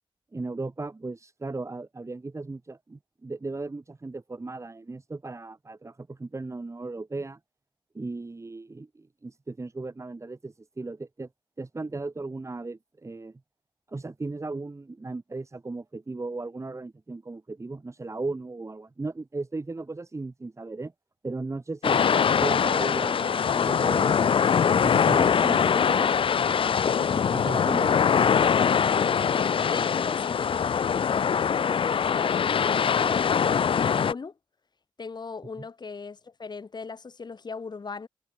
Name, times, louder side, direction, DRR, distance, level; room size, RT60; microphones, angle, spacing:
voice 1, 0.3-7.4 7.9-11.3 11.6-13.4 13.9-20.9 21.2-22.0 22.4-24.3 24.8-26.2 26.9-28.2, right 3 dB, 30° right, 3.7 m, -36 dB
sound 1, 21.8-34.1, left 7 dB, 70° left, 0.5 m, -23 dB
voice 2, 29.3-34.4 35.0-38.1, left 4 dB, 50° left, 2.3 m, -39 dB
wide cardioid pair, 105°, 9 cm